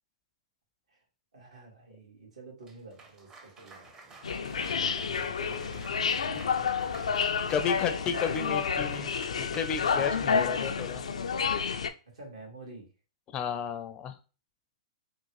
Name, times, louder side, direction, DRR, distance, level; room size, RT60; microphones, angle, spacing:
voice 1, 1.3-4.2 4.5-7.2 12.1-12.9, right 3 dB, 85° right, -1 dB, 1.9 m, -50 dB
Cheering / Applause, 2.6-10.3, right 3 dB, 20° right, 0.6 m, -51 dB
sound 1, 4.2-11.9, left 6 dB, 90° left, 0.4 m, -30 dB
voice 2, 7.5-11.1 13.3-14.2, left 7 dB, 25° left, 9 dB, 0.4 m, -32 dB
3.7 x 2.4 x 3.0 m, 0.33 s
hypercardioid pair, 135°, 3 cm